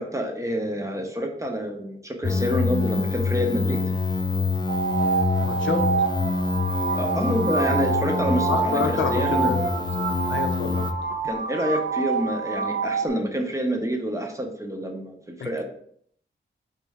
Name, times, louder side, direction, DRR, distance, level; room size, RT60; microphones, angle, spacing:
voice 1, 0.0-3.8 6.9-9.5 11.2-15.6, equal, 15° right, 3 dB, 0.7 m, -27 dB
sound 1, 2.2-10.9, left 4 dB, 20° left, 0.3 m, -26 dB
sound 2, 4.7-13.1, right 5 dB, 60° right, 0.6 m, -27 dB
voice 2, 5.4-5.9 8.5-10.9 15.4-15.5, left 5 dB, 75° left, 6 dB, 0.5 m, -29 dB
4.4 x 3.1 x 3.5 m, 0.65 s
wide cardioid pair, 90°, 20 cm